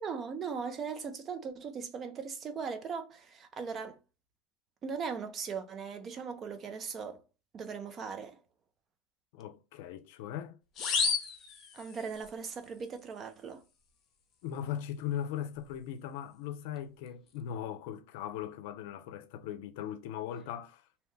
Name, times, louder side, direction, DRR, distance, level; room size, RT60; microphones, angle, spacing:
voice 1, 0.0-4.0 4.8-7.2 7.5-8.4 11.7-13.6, right 5 dB, 30° right, 0.6 m, -39 dB
voice 2, 9.3-10.6 14.4-20.9, left 10 dB, 65° left, 0.5 m, -39 dB
sound 1, 10.8-12.3, left 5 dB, 35° left, 0.7 m, -32 dB
2.8 x 2.2 x 3.2 m
supercardioid pair, 125°, 0 cm